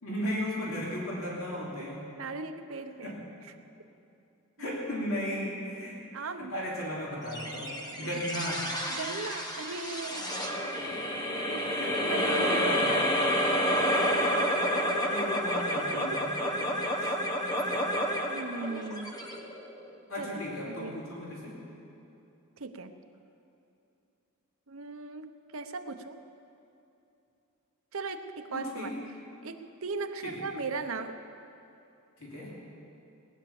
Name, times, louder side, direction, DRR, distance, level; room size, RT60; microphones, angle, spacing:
voice 1, 0.0-2.0 3.0-3.2 4.6-6.0 6.5-8.6 11.7-13.2 14.2-14.4 14.8-16.3 20.1-21.6 28.5-28.9 30.2-30.3 32.2-32.5, left 1 dB, 70° left, -5 dB, 3.1 m, -35 dB
voice 2, 2.1-3.1 3.4-3.5 4.6-5.0 5.3-5.4 6.1-6.5 8.0-8.4 8.9-10.3 11.5-13.1 13.3-13.6 13.9-14.1 14.5-14.6 15.8-16.7 16.9-17.2 18.2-19.2 20.2-21.0 22.6-22.9 24.7-26.2 27.9-28.9 29.4-31.2, right 3 dB, 70° right, 7 dB, 0.9 m, -38 dB
sound 1, 7.3-19.9, equal, 20° left, 1.2 m, -29 dB
19.0 x 10.5 x 7.1 m, 2.8 s
head